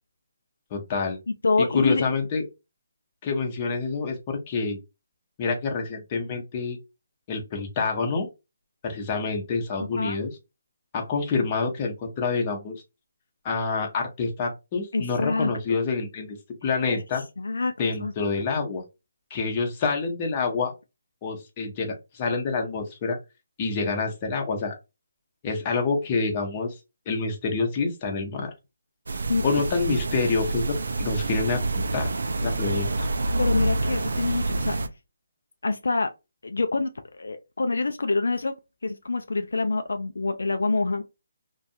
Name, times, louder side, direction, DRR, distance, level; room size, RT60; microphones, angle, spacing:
voice 1, 0.7-1.2 1.7-2.4 3.2-4.8 5.4-6.8 7.3-8.3 8.8-10.3 10.9-12.7 13.4-16.4 16.6-17.2 17.8-18.8 19.3-20.7 21.2-23.2 23.6-24.7 25.4-26.7 27.1-28.5 29.4-32.1 32.4-33.1, left 4 dB, 30° left, 0.8 m, -27 dB
voice 2, 1.4-2.1 9.8-10.2 14.9-15.8 16.9-17.7 18.0-18.1 29.3-29.4 33.4-34.8 35.6-36.1 36.4-38.5 38.8-41.0, left 3 dB, 75° left, 0.3 m, -26 dB
sound 1, 29.1-34.9, right 2 dB, 70° right, 0.4 m, -27 dB
2.5 x 2.3 x 2.6 m
figure-of-eight pair, 150°, 0 cm